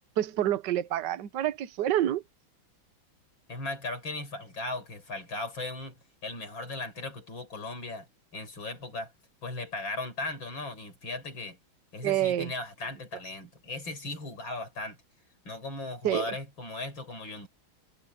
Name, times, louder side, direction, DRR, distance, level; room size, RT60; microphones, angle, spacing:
voice 1, 0.2-2.2 12.0-12.5 16.0-16.3, right 12 dB, 60° right, 1.6 m, -27 dB
voice 2, 3.5-6.0 6.2-8.1 8.3-9.1 9.4-11.6 11.9-15.0 15.4-17.5, left 2 dB, 70° left, 6.5 m, -37 dB
omnidirectional pair, 2.2 m